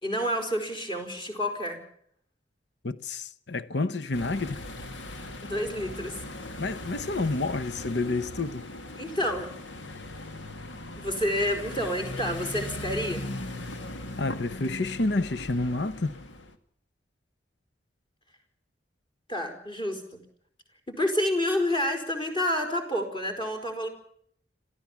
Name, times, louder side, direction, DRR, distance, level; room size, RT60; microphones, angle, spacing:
voice 1, 0.0-1.8 5.4-6.2 9.0-9.5 11.0-13.2 19.3-20.2 20.9-23.9, equal, 30° left, 4.8 m, -29 dB
voice 2, 2.8-4.6 6.6-8.7 14.2-16.2, left 2 dB, 65° left, 0.9 m, -29 dB
sound 1, 4.1-16.5, left 1 dB, 90° left, 2.0 m, -39 dB
27.0 x 14.5 x 7.3 m
head